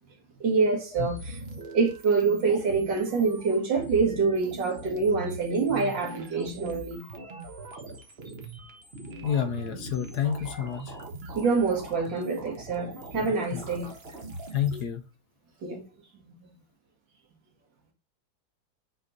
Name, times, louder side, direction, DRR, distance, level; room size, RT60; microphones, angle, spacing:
voice 1, 0.4-7.0 11.3-13.9 15.6-15.8, right 4 dB, 60° right, 2.1 m, -26 dB
sound 1, 0.9-14.8, right 1 dB, 35° right, 1.1 m, -41 dB
voice 2, 9.2-11.0 13.5-13.6 14.5-15.0, left 9 dB, 65° left, 1.1 m, -29 dB
6.4 x 4.5 x 3.8 m
omnidirectional pair, 2.3 m